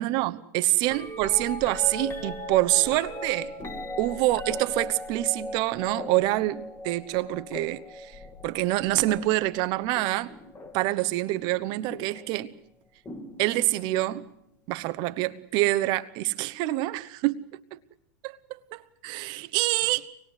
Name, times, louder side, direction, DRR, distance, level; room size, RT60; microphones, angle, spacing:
voice 1, 0.0-3.5 4.0-10.3 10.7-12.5 13.4-14.3 14.7-17.4 17.7-17.8 18.2-18.4 18.7-20.1, right 17 dB, 50° right, 1.0 m, -26 dB
sound 1, 0.8-11.0 11.9-12.3 13.1-14.0 15.8-15.9, left 1 dB, 25° left, 2.6 m, -38 dB
25.0 x 20.5 x 8.2 m
hypercardioid pair, 110°, 10 cm